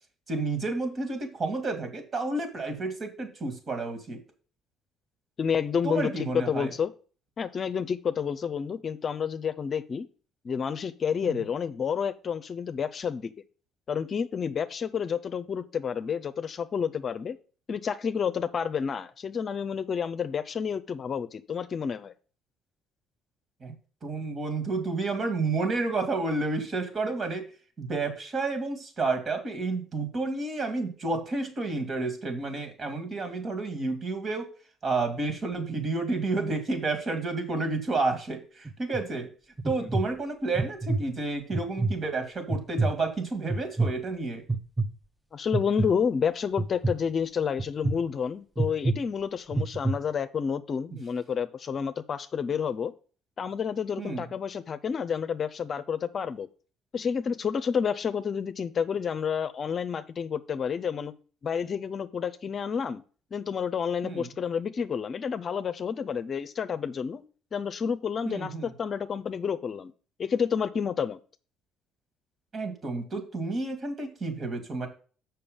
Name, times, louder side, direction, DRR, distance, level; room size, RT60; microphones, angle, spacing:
voice 1, 0.3-4.2 5.8-6.7 11.2-11.3 23.6-23.7 24.0-27.5 27.8-34.5 34.8-39.3 39.6-44.4 54.0-54.3 64.0-64.3 68.2-68.7 72.5-74.9, right 3 dB, 40° right, 7 dB, 2.5 m, -30 dB
voice 2, 5.4-6.9 7.4-10.1 10.4-13.3 13.9-17.4 17.7-22.1 39.8-40.0 45.3-52.9 53.4-56.5 56.9-61.1 61.4-63.0 63.3-67.2 67.5-69.9 70.2-71.2, left 7 dB, 45° left, 11 dB, 0.6 m, -30 dB
sound 1, 38.7-39.0 39.6-40.0 40.6-41.0 41.5-42.0 42.5-42.9 43.5-43.9 44.5-44.9 45.5-45.9 46.6-46.9 47.6-47.9 48.6-48.9 49.5-49.9, right 3 dB, 10° right, 1.0 m, -26 dB
6.9 x 5.8 x 5.3 m, 0.39 s
hypercardioid pair, 55°, 0 cm